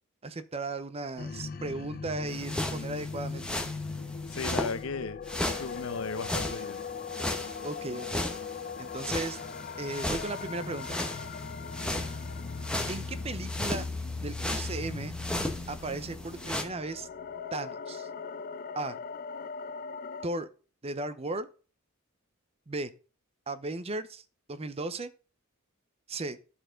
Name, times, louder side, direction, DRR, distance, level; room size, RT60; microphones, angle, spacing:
voice 1, 0.2-3.4 7.6-8.3 8.8-9.4 9.8-11.0 12.9-13.9 14.2-15.1 15.7-17.1 17.5-18.1 18.8-19.0 20.2-20.5 20.8-21.5 22.7-22.9 23.5-24.2 24.5-25.1 26.1-26.4, right 2 dB, 30° right, 0.6 m, -36 dB
sound 1, 1.2-20.3, left 4 dB, 45° left, 0.4 m, -39 dB
sound 2, 2.3-4.8 5.2-16.6, left 1 dB, 5° left, 1.0 m, -36 dB
voice 2, 4.3-6.8, left 4 dB, 70° left, 0.8 m, -36 dB
11.5 x 4.4 x 5.0 m
head